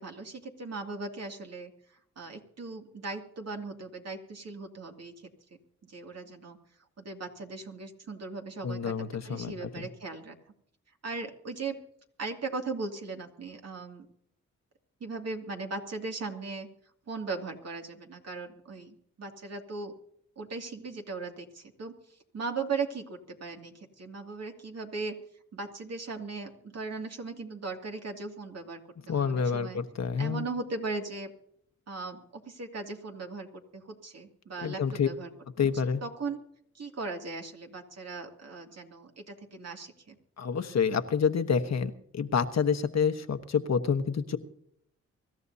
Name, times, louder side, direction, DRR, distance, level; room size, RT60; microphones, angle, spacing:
voice 1, 0.0-1.7 2.2-5.1 5.9-6.6 7.0-8.9 9.2-10.4 11.0-11.8 12.2-14.1 15.0-16.7 17.1-19.9 20.4-21.9 22.3-25.2 25.5-28.8 29.1-29.8 30.2-31.3 31.9-33.5 33.7-35.3 36.0-36.4 36.7-40.2, right 4 dB, 60° right, 2 dB, 2.5 m, -38 dB
voice 2, 8.6-9.9 29.1-30.5 34.6-35.1 35.6-36.0 40.4-44.4, left 6 dB, 60° left, 9 dB, 1.2 m, -28 dB
24.5 x 13.0 x 2.8 m, 0.70 s
cardioid pair, 55°, 29 cm